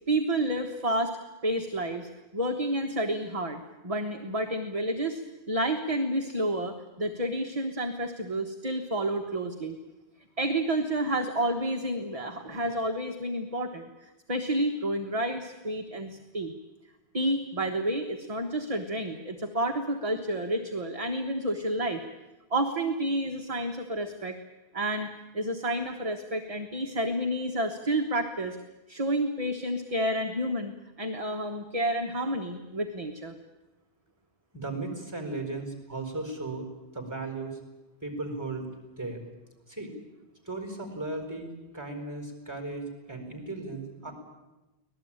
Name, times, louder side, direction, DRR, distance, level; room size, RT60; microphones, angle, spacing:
voice 1, 0.1-1.1 1.4-5.2 5.5-9.8 10.4-16.5 17.1-22.0 22.5-24.4 24.7-25.1 25.3-28.6 28.9-30.7 31.0-33.3, right 1 dB, 35° right, 4 dB, 1.3 m, -30 dB
voice 2, 34.5-36.7 36.9-37.6 38.0-39.2 39.7-39.9 40.4-44.1, right 2 dB, 15° right, 5 dB, 4.7 m, -36 dB
25.0 x 18.5 x 8.9 m, 1.1 s
omnidirectional pair, 1.1 m